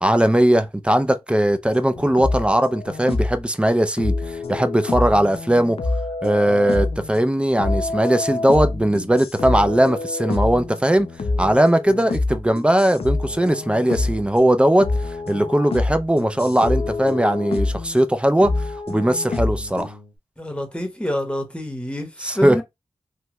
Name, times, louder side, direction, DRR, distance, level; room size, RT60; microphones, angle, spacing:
voice 1, 0.0-5.8 6.2-11.1 11.4-14.9 15.3-18.5 18.9-19.9 22.2-22.6, right 1 dB, 10° right, 0.5 m, -19 dB
sound 1, 1.7-3.4 4.0-7.2 7.6-18.1 18.4-20.1, left 3 dB, 75° left, 0.5 m, -26 dB
voice 2, 20.4-22.6, equal, 10° left, 1.1 m, -27 dB
3.1 x 2.2 x 2.9 m
cardioid pair, 55°, 10 cm